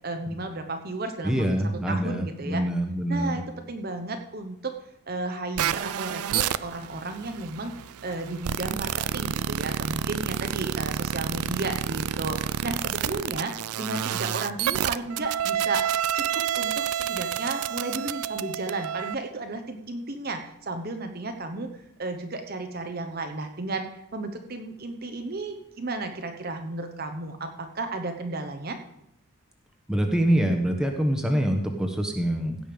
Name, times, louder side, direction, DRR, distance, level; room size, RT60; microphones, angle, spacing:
voice 1, 0.0-1.4 1.9-2.6 3.1-3.4 3.7-4.7 5.1-7.7 8.0-15.9 16.1-21.7 22.0-28.8, right 2 dB, 45° right, 6 dB, 1.0 m, -33 dB
voice 2, 1.2-3.4 29.9-32.6, right 1 dB, 5° right, 3 dB, 1.3 m, -25 dB
sound 1, 5.6-19.2, right 9 dB, 90° right, 0.4 m, -29 dB
16.0 x 5.5 x 6.8 m, 0.77 s
head